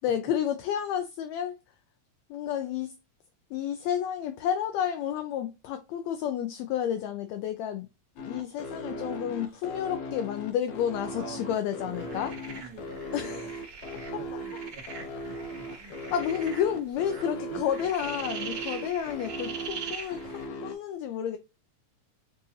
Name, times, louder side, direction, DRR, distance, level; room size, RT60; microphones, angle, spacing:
voice 1, 0.0-1.6 2.3-2.9 3.5-7.9 8.2-12.3 13.1-13.5 15.7-15.8 16.1-21.4, left 9 dB, 80° left, 1.7 m, -31 dB
sound 1, 8.2-20.7, equal, 65° left, 1.5 m, -38 dB
voice 2, 11.0-13.5 13.9-15.9 17.5-17.9, right 3 dB, 85° right, 0.8 m, -46 dB
sound 2, 12.0-20.5, right 6 dB, 45° right, 1.7 m, -42 dB
6.8 x 2.5 x 2.6 m
omnidirectional pair, 3.4 m